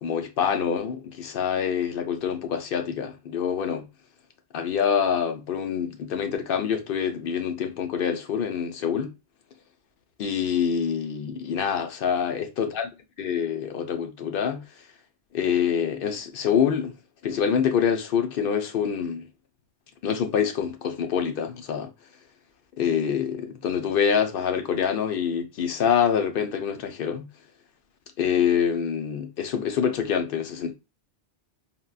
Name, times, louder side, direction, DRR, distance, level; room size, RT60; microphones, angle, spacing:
voice 1, 0.0-3.9 4.5-9.1 10.2-12.9 13.2-14.7 15.3-16.9 17.2-19.2 20.0-21.9 22.8-27.3 28.2-30.7, left 7 dB, 60° left, 0.7 m, -26 dB
3.8 x 2.2 x 2.2 m
omnidirectional pair, 1.1 m